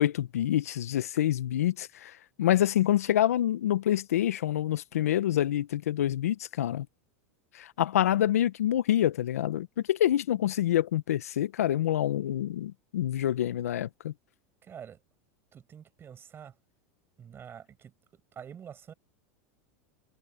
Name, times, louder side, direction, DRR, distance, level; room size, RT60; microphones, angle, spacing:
voice 1, 0.0-6.9 7.5-14.1, left 12 dB, 85° left, 1.0 m, -27 dB
voice 2, 14.6-15.0 15.5-16.6 17.2-18.9, right 8 dB, 30° right, 6.5 m, -47 dB
hypercardioid pair, 105°, 8 cm